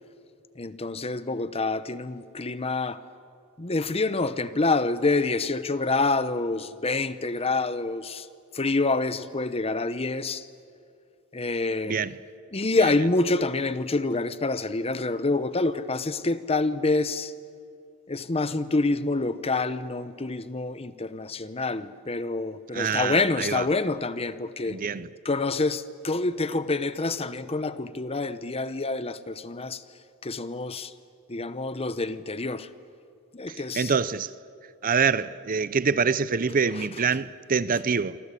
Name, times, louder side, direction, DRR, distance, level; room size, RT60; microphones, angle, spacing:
voice 1, 0.6-3.0 3.6-8.3 8.5-10.4 11.3-12.0 12.5-17.3 18.1-24.8 25.2-29.8 30.2-30.9 31.3-32.7 33.3-33.9 36.7-36.9, left 3 dB, 25° left, 0.9 m, -27 dB
voice 2, 22.7-23.6 24.7-25.1 33.7-34.3 34.8-38.2, right 5 dB, 40° right, 0.6 m, -25 dB
26.5 x 26.0 x 8.4 m
head